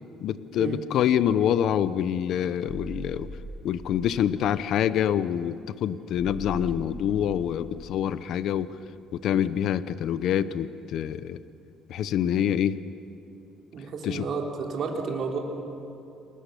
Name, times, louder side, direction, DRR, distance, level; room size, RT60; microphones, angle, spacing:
voice 1, 0.2-3.3 3.6-8.8 9.1-11.4 11.9-12.8 14.0-14.3, left 9 dB, 65° left, 14 dB, 0.7 m, -26 dB
sound 1, 2.7-4.5 6.1-8.1, right 1 dB, 10° right, 1.5 m, -41 dB
voice 2, 13.7-15.4, right 5 dB, 50° right, 0 dB, 3.7 m, -31 dB
29.0 x 20.5 x 6.8 m, 2.8 s
cardioid pair, 120°, 0 cm